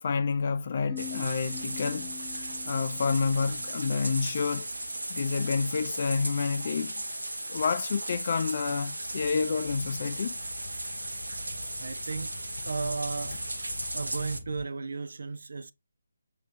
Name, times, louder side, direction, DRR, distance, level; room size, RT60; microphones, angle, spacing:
voice 1, 0.0-2.1 2.7-4.7 5.1-6.9 7.5-10.3, left 5 dB, 45° left, 0.5 m, -29 dB
sound 1, 0.9-4.5, left 16 dB, 5° right, 0.6 m, -44 dB
sound 2, 1.0-14.4, right 1 dB, 75° right, 0.9 m, -36 dB
sound 3, 9.0-14.6, left 2 dB, 75° left, 0.8 m, -45 dB
voice 2, 11.8-12.3 12.6-13.4 13.9-15.7, right 4 dB, 60° right, 0.5 m, -34 dB
6.6 x 3.0 x 2.6 m
figure-of-eight pair, 150°, 0 cm